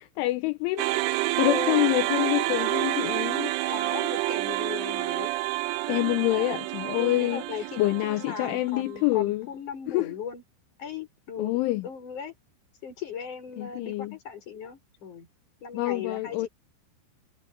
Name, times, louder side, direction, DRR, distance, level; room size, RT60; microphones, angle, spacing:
voice 1, 0.2-3.5 5.9-7.4 7.8-9.5 9.9-10.1 11.4-11.9 13.6-14.2 15.7-16.5, left 19 dB, 80° left, 3.1 m, -26 dB
sound 1, 0.8-9.1, right 19 dB, 85° right, 3.3 m, -29 dB
voice 2, 1.5-1.8 3.7-5.3 6.3-6.6 7.0-10.4 10.8-12.3 12.8-15.3 15.6-16.5, left 7 dB, 40° left, 8.1 m, -37 dB
omnidirectional pair, 5.8 m